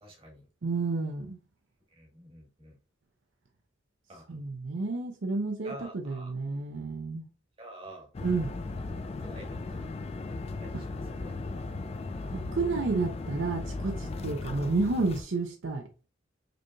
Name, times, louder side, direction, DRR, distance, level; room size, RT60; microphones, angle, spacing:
voice 1, 0.0-0.4 2.0-2.8 4.1-4.2 5.6-6.3 7.6-8.1 9.2-9.9 10.6-11.7, right 1 dB, 30° right, 1.4 m, -48 dB
voice 2, 0.6-1.4 4.3-7.2 8.2-8.5 10.7-10.8 12.2-15.8, right 3 dB, 70° right, 0.6 m, -31 dB
sound 1, 8.1-15.2, left 3 dB, 30° left, 0.3 m, -37 dB
5.0 x 3.1 x 2.3 m
head